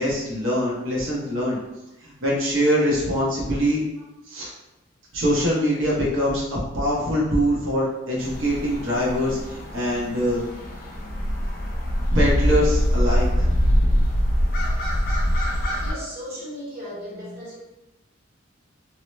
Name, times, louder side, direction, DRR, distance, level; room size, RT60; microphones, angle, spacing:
voice 1, 0.0-1.6 2.0-3.8 4.3-4.5 5.1-10.4 12.1-13.5, equal, 70° right, -5 dB, 0.8 m, -23 dB
sound 1, 8.2-15.9, equal, 45° left, 0.5 m, -23 dB
voice 2, 15.8-17.6, equal, 50° right, -6 dB, 1.2 m, -36 dB
2.9 x 2.0 x 3.1 m, 0.95 s
head